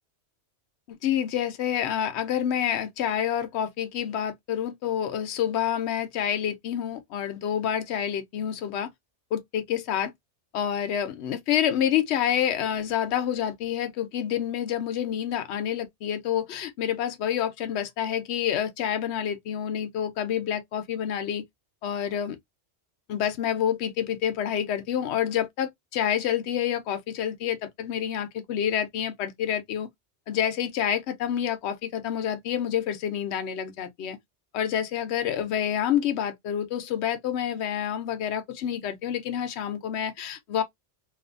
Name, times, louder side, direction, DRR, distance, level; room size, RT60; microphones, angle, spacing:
voice 1, 0.9-8.9 9.3-10.1 10.5-21.4 21.8-22.4 23.1-29.9 30.3-34.2 34.5-40.6, left 9 dB, 70° left, 0.9 m, -28 dB
2.6 x 2.5 x 2.5 m
omnidirectional pair, 1.2 m